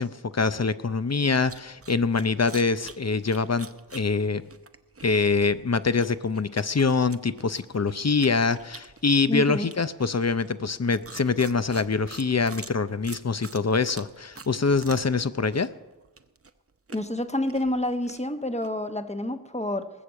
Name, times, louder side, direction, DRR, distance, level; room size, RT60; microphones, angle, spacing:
voice 1, 0.0-3.7 3.9-4.4 5.0-15.7, left 4 dB, 40° left, 13 dB, 0.7 m, -24 dB
sound 1, 1.3-15.3 15.5-18.7, right 4 dB, 35° right, 0.7 m, -46 dB
voice 2, 9.3-9.7 16.9-19.9, left 1 dB, 15° left, 8 dB, 1.1 m, -28 dB
19.5 x 6.8 x 7.5 m, 1.1 s
wide cardioid pair, 45°, 39 cm